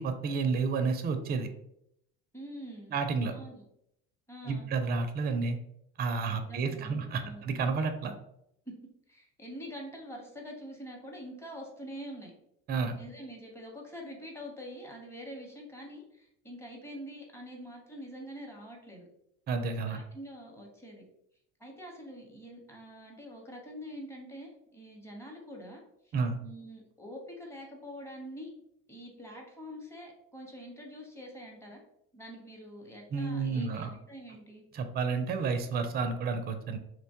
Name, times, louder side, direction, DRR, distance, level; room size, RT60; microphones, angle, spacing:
voice 1, 0.0-1.5 2.9-3.3 4.5-5.6 6.0-8.1 12.7-12.9 19.5-20.0 26.1-26.4 33.1-33.9 34.7-36.8, right 4 dB, 30° right, 8 dB, 0.4 m, -30 dB
voice 2, 2.3-2.9 3.3-3.6 4.3-4.7 6.4-7.4 8.7-8.8 9.1-12.3 12.9-19.1 19.9-21.0 21.6-26.1 26.4-28.5 28.9-31.8 32.1-34.6, equal, 10° left, 0 dB, 0.9 m, -45 dB
2.9 x 2.2 x 2.8 m, 0.76 s
supercardioid pair, 85°, 31 cm